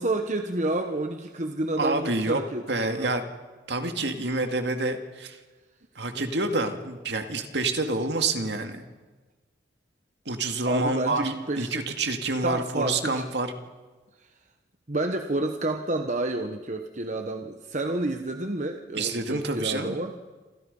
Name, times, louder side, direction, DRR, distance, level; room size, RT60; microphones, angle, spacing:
voice 1, 0.0-3.2 6.1-6.3 10.6-11.8 12.4-13.3 14.2-14.3 14.9-20.1, right 2 dB, 40° right, 5 dB, 1.2 m, -30 dB
voice 2, 1.8-2.4 2.7-3.3 3.7-5.4 6.0-8.8 10.3-13.5 19.0-20.0, right 2 dB, 65° right, 6 dB, 2.3 m, -28 dB
28.5 x 27.0 x 5.5 m, 1.3 s
head